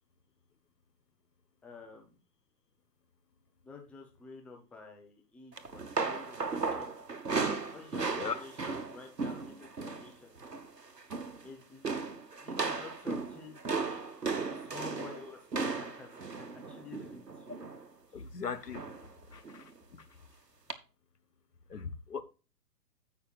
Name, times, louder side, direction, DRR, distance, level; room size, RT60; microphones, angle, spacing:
voice 1, 1.6-2.2 3.6-7.0 7.4-10.3 11.4-13.6 14.5-17.5 18.1-18.3, left 4 dB, 5° left, 0.8 m, -50 dB
sound 1, 5.6-10.1 10.4-10.7 11.0-11.5 11.8-17.9 18.7-19.1 19.4-19.6 20.7-20.8, right 4 dB, 85° right, 1.2 m, -36 dB
voice 2, 18.1-18.8 19.3-20.1 21.7-22.2, left 6 dB, 75° left, 1.1 m, -39 dB
16.0 x 5.8 x 2.4 m
figure-of-eight pair, 125°, 48 cm